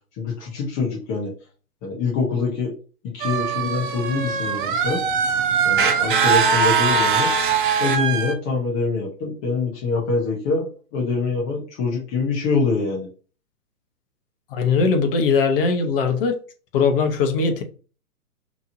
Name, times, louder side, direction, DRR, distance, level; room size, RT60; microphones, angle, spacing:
voice 1, 0.2-1.3 1.8-2.7 3.1-5.0 5.6-7.3 7.8-13.1, left 4 dB, 15° left, 0.5 m, -24 dB
sound 1, 3.2-8.3, right 6 dB, 35° right, 0.5 m, -21 dB
voice 2, 14.5-16.4 16.7-17.6, left 5 dB, 35° left, 0.9 m, -20 dB
5.2 x 3.0 x 2.6 m
hypercardioid pair, 135°, 46 cm